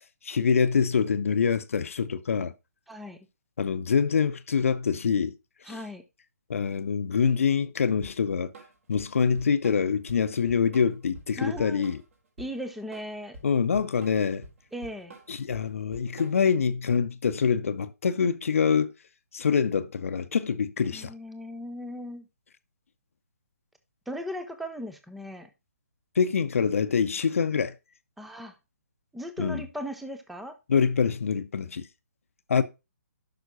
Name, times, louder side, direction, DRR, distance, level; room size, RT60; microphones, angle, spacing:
voice 1, 0.2-2.5 3.6-5.3 5.7-5.8 6.5-8.5 8.9-12.0 13.4-14.5 15.3-18.9 19.3-21.1 26.2-27.7 29.4-29.6 30.7-31.9 32.5-32.6, left 6 dB, 55° left, 0.7 m, -25 dB
voice 2, 2.9-3.2 5.6-6.0 11.4-11.9 12.4-13.4 14.7-15.2 20.8-22.3 24.1-25.5 28.2-28.6 29.1-30.6, equal, ahead, 0.6 m, -37 dB
Drum kit / Drum, 8.0-16.6, right 1 dB, 55° right, 4.1 m, -48 dB
11.5 x 6.0 x 2.6 m
figure-of-eight pair, 135°, 9 cm